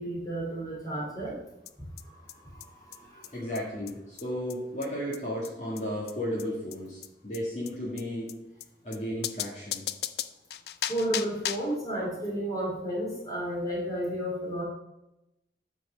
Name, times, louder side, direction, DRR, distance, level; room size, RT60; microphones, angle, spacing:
voice 1, 0.0-1.4 2.0-3.3 10.9-14.6, right 1 dB, 20° left, -3 dB, 2.7 m, -33 dB
sound 1, 1.7-1.8 2.0-2.1 2.3-2.4 2.6-2.7 2.9-3.0 3.2-3.3 3.5-3.6 3.9-4.0 4.2-4.3 4.5-4.6 4.8-4.9 5.1-5.2 5.4-5.5 5.8-5.9 6.1-6.2 6.4-6.5 6.7-6.8 7.0-7.1 7.3-7.4 7.7-7.8 8.0-8.1 8.3-8.4 8.6-8.7 8.9-9.0 9.2-11.8, left 11 dB, 65° left, 0.4 m, -35 dB
voice 2, 3.3-8.3 8.8-9.9, equal, 40° left, -5 dB, 1.8 m, -34 dB
8.8 x 4.7 x 6.1 m, 0.91 s
head